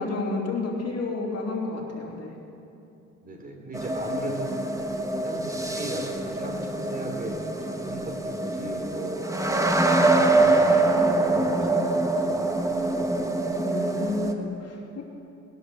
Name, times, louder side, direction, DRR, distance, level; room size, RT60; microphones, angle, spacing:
voice 1, 0.0-2.3 13.6-15.0, left 3 dB, 55° left, -1 dB, 3.1 m, -31 dB
voice 2, 3.2-4.5 5.1-9.7 10.2-13.1, right 2 dB, 30° right, 1 dB, 3.2 m, -38 dB
sound 1, 3.7-14.3, right 2 dB, 10° right, 1.3 m, -24 dB
20.0 x 10.5 x 6.6 m, 2.9 s
cardioid pair, 90°, 30 cm